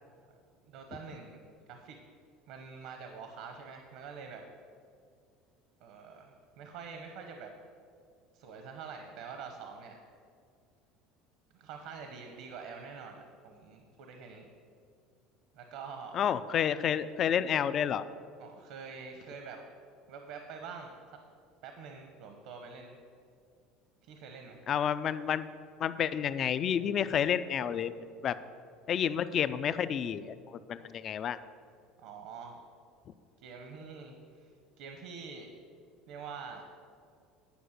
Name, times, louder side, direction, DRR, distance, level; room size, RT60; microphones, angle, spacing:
voice 1, 0.6-2.0 2.5-4.4 5.8-7.5 8.3-10.0 11.5-14.5 15.5-16.2 18.4-19.6 20.1-21.0 21.6-23.0 24.0-24.6 30.8-30.9 32.0-32.6 33.4-34.5 34.8-35.5 36.1-36.6, right 5 dB, 65° right, 4 dB, 0.9 m, -46 dB
voice 2, 16.1-18.0 24.7-25.4 25.8-27.9 28.2-28.3 28.9-30.3 30.7-31.4, left 8 dB, 35° left, 14 dB, 0.3 m, -30 dB
10.0 x 5.2 x 6.5 m, 2.3 s
cardioid pair, 160°, 0 cm